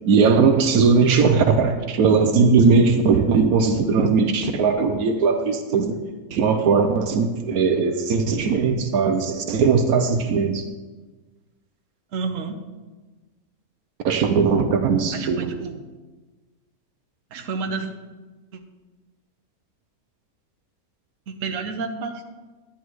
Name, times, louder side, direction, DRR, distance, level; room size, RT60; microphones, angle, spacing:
voice 1, 0.0-6.0 6.3-10.6 14.0-15.5, right 5 dB, 80° right, 6 dB, 1.2 m, -19 dB
voice 2, 12.1-12.6 15.1-15.8 17.3-17.9 18.5-18.6 21.3-22.2, right 4 dB, 65° right, 6 dB, 1.2 m, -30 dB
12.0 x 10.0 x 3.1 m, 1.3 s
omnidirectional pair, 1.6 m